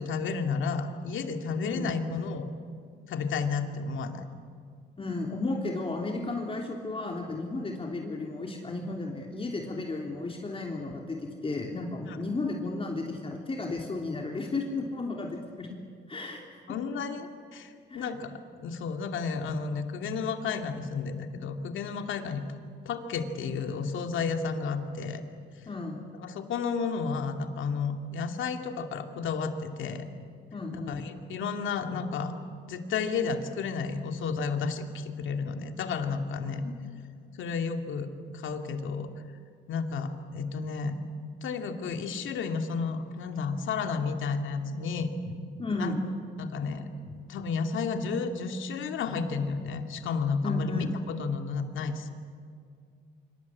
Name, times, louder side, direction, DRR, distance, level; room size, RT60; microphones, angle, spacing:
voice 1, 0.0-2.5 3.1-4.2 12.1-12.2 16.7-22.4 22.8-25.2 26.2-30.1 30.7-32.3 32.7-36.6 37.4-39.1 39.7-41.0 41.4-45.4 45.8-45.9 46.4-52.1, left 5 dB, 75° left, 5 dB, 2.6 m, -32 dB
voice 2, 5.0-15.7 16.1-16.6 17.9-18.1 25.7-26.1 30.5-31.1 36.5-36.8 45.6-46.0 50.4-50.9, left 3 dB, 25° left, 0 dB, 3.3 m, -34 dB
25.5 x 25.0 x 8.6 m, 2.2 s
cardioid pair, 90°, 20 cm